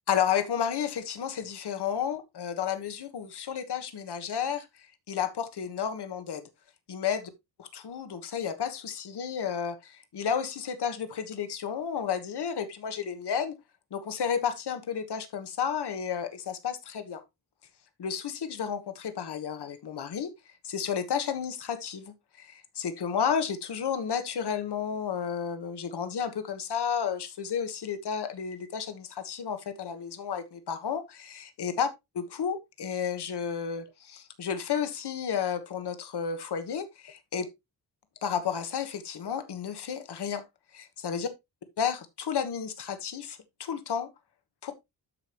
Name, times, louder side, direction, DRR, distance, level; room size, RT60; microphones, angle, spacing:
voice 1, 0.1-6.4 6.9-7.3 7.6-13.5 13.9-17.2 18.0-20.3 20.6-31.9 32.1-37.5 38.2-40.4 40.7-41.3 41.8-44.1 44.6-44.7, left 7 dB, 85° left, 1.3 m, -32 dB
12.5 x 5.1 x 3.0 m
wide cardioid pair, 155°, 39 cm